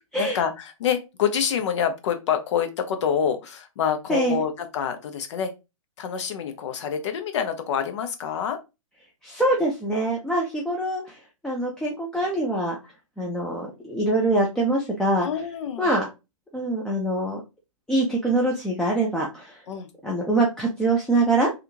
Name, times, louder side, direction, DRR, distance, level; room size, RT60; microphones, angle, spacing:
voice 1, 0.2-5.5 6.0-8.6 15.2-15.9 19.7-19.9, left 8 dB, 55° left, 7 dB, 0.8 m, -27 dB
voice 2, 4.1-4.4 9.2-12.8 13.2-15.3 15.8-16.1 16.5-17.4 17.9-19.6 20.0-21.5, right 2 dB, 5° left, -3 dB, 0.5 m, -24 dB
3.5 x 2.4 x 2.7 m, 0.25 s
hypercardioid pair, 130°, 18 cm